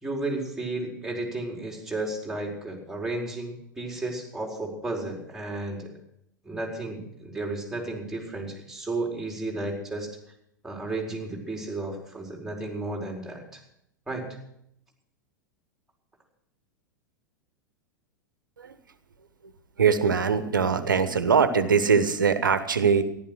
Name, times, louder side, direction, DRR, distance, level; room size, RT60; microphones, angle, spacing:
voice 1, 0.0-5.9 6.4-10.1 10.6-13.6 14.1-14.3, right 2 dB, 5° right, 0 dB, 4.6 m, -33 dB
voice 2, 19.8-23.0, right 6 dB, 80° right, 12 dB, 1.3 m, -22 dB
14.5 x 12.0 x 6.3 m, 0.73 s
figure-of-eight pair, 90°, 11 cm